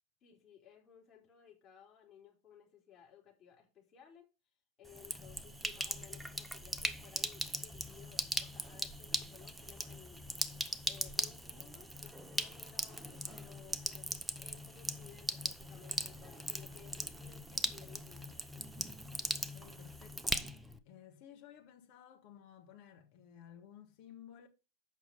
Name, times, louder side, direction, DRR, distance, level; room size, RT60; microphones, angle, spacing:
voice 1, 0.2-4.2 4.8-10.2 10.8-18.5, left 9 dB, 30° left, 3.8 m, -59 dB
Sink (filling or washing), 4.9-20.8, right 1 dB, 5° right, 0.7 m, -40 dB
voice 2, 17.8-18.4 19.4-24.5, left 9 dB, 45° left, 1.8 m, -57 dB
8.0 x 6.0 x 5.4 m
figure-of-eight pair, 90°, 0 cm